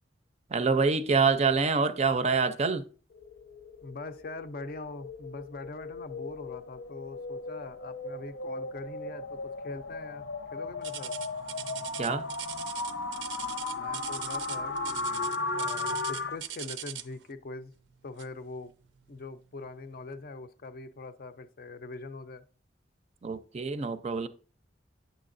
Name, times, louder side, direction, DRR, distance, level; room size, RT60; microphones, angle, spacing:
voice 1, 0.5-2.9 12.0-12.3 23.2-24.3, right 4 dB, 35° right, 0.4 m, -26 dB
sound 1, 3.1-16.4, left 3 dB, 90° left, 0.8 m, -36 dB
voice 2, 3.8-10.2 10.5-11.1 13.7-17.7 18.0-18.7 19.1-22.4, left 3 dB, 55° left, 0.5 m, -42 dB
sound 2, 10.8-17.2 18.2-18.4 19.0-19.1 19.8-19.9, right 11 dB, 90° right, 0.5 m, -40 dB
9.0 x 6.6 x 2.5 m
head